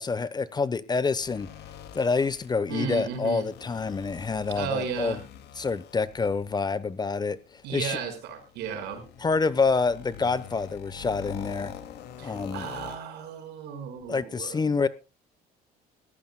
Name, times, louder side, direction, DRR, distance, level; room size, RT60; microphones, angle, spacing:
voice 1, 0.0-1.5 1.9-5.2 5.6-7.4 7.7-8.0 9.2-11.7 12.2-12.7 14.1-14.9, left 4 dB, 25° left, 16 dB, 0.9 m, -27 dB
sound 1, 1.2-13.0, left 10 dB, 80° left, 2.3 m, -45 dB
voice 2, 2.7-3.4 4.5-5.2 7.6-9.0 12.2-14.6, right 7 dB, 85° right, 5 dB, 5.1 m, -34 dB
20.5 x 15.0 x 2.2 m, 0.30 s
cardioid pair, 110°, 17 cm